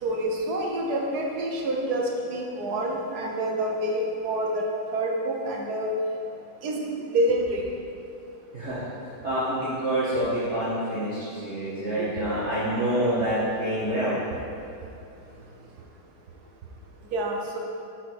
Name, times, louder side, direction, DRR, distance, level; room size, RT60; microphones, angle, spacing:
voice 1, 0.0-4.6 4.9-5.9 6.6-6.8 7.1-7.6 12.0-12.1 17.1-17.6, right 1 dB, 65° right, 0 dB, 1.3 m, -27 dB
voice 2, 8.5-8.8 9.2-14.2, right 1 dB, 40° right, -11 dB, 1.5 m, -27 dB
6.4 x 4.9 x 6.1 m, 2.6 s
omnidirectional pair, 2.0 m